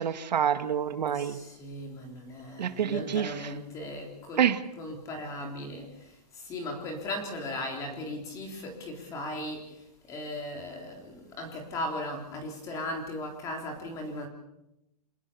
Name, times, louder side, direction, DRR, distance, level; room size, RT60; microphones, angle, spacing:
voice 1, 0.0-1.4 2.6-3.5 4.4-4.6, right 8 dB, 85° right, 9 dB, 2.1 m, -27 dB
voice 2, 1.1-4.4 4.8-9.7 10.1-14.3, left 1 dB, 15° left, 3 dB, 3.8 m, -37 dB
28.0 x 19.0 x 7.1 m, 0.88 s
hypercardioid pair, 175°, 21 cm